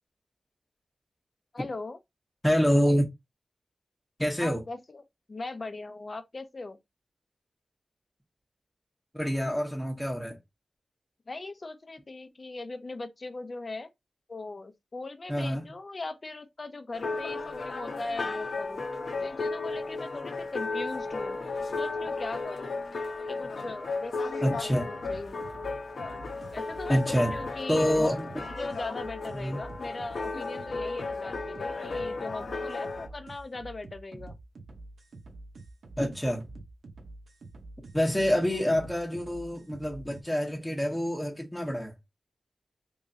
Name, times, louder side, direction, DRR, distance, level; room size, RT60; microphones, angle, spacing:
voice 1, 1.5-2.0 4.4-5.0 5.3-6.8 11.3-13.9 14.3-18.9 19.2-21.4 21.8-22.8 23.3-25.4 26.5-28.1 28.6-34.4 38.5-38.6, left 3 dB, 40° left, 0.6 m, -39 dB
voice 2, 2.4-3.1 4.2-4.6 9.1-10.4 15.3-15.7 24.4-24.9 26.9-27.4 27.7-28.3 29.4-29.6 36.0-36.4 37.9-41.9, equal, 5° left, 0.9 m, -26 dB
sound 1, 16.9-33.1, left 3 dB, 70° left, 0.8 m, -34 dB
sound 2, 25.0-40.2, right 2 dB, 80° right, 0.9 m, -47 dB
3.5 x 3.1 x 2.7 m
wide cardioid pair, 105°, 0 cm